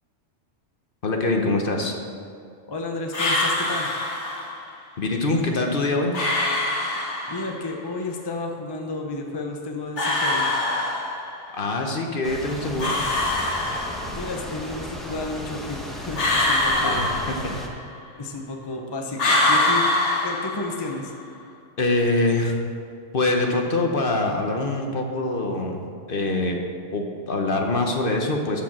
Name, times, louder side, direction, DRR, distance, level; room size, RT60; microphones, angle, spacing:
voice 1, 1.0-1.9 5.0-6.1 11.5-13.0 16.8-17.2 21.8-22.5 23.1-25.8 26.1-26.6 26.9-28.6, left 2 dB, 50° left, 2 dB, 1.1 m, -24 dB
voice 2, 2.7-3.9 7.3-10.5 14.1-17.1 18.1-19.9 20.2-21.1, left 2 dB, 25° left, 2 dB, 0.7 m, -32 dB
sound 1, 3.1-4.6 6.1-7.6 10.0-11.5 12.8-14.3 16.2-17.9 19.2-21.0, left 2 dB, 70° left, 1.6 m, -24 dB
sound 2, 12.2-17.7, equal, ahead, 1.1 m, -35 dB
12.5 x 5.1 x 6.1 m, 2.4 s
omnidirectional pair, 1.3 m